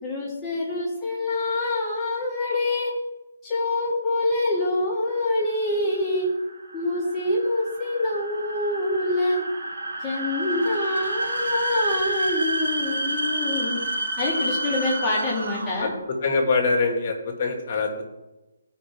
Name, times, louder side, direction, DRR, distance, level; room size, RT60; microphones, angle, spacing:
voice 1, 0.0-2.9 3.4-6.3 6.7-9.4 10.0-13.8 14.2-15.9, left 2 dB, 5° left, -12 dB, 3.5 m, -25 dB
sound 1, 5.3-16.0, right 1 dB, 75° right, 2.4 m, -29 dB
voice 2, 16.2-18.1, left 4 dB, 35° left, 2 dB, 1.9 m, -24 dB
16.5 x 5.5 x 3.6 m, 1.0 s
hypercardioid pair, 170°, 0 cm